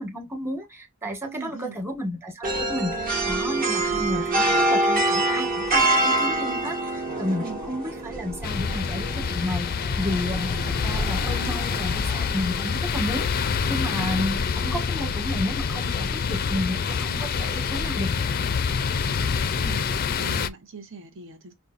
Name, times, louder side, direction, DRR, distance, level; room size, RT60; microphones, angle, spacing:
voice 1, 0.0-18.3, left 1 dB, 10° right, 1.3 m, -32 dB
voice 2, 1.2-1.8 6.0-6.1 7.4-7.6 19.6-21.5, right 4 dB, 65° right, 0.9 m, -41 dB
sound 1, 2.4-12.7, right 2 dB, 45° right, 1.2 m, -26 dB
sound 2, 8.4-20.5, left 6 dB, 45° left, 0.4 m, -26 dB
5.3 x 2.3 x 2.5 m
head